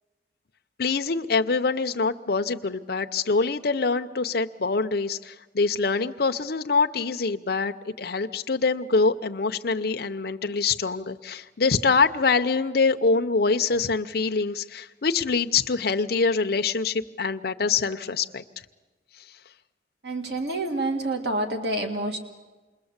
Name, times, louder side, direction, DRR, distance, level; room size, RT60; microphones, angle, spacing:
voice 1, 0.8-18.4, left 4 dB, 60° left, 7 dB, 0.7 m, -24 dB
voice 2, 20.0-22.2, right 2 dB, 70° right, 4 dB, 2.1 m, -28 dB
27.5 x 21.5 x 8.1 m, 1.3 s
head